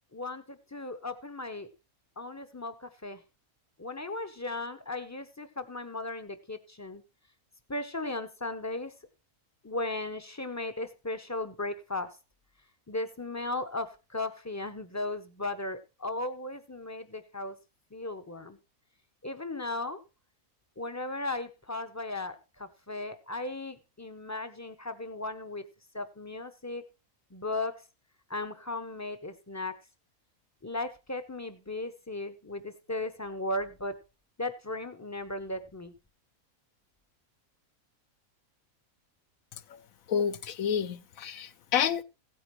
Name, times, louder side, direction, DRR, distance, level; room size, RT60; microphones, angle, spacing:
voice 1, 0.1-1.7 2.2-3.2 3.8-7.0 7.7-8.9 9.6-12.1 12.9-17.6 17.9-18.6 19.2-20.0 20.8-25.6 25.9-26.8 27.3-27.8 28.3-29.8 30.6-33.9 34.4-35.9, left 2 dB, 15° left, 0.6 m, -36 dB
voice 2, 40.1-42.0, left 8 dB, 70° left, 1.1 m, -29 dB
16.0 x 8.8 x 3.1 m
omnidirectional pair, 1.5 m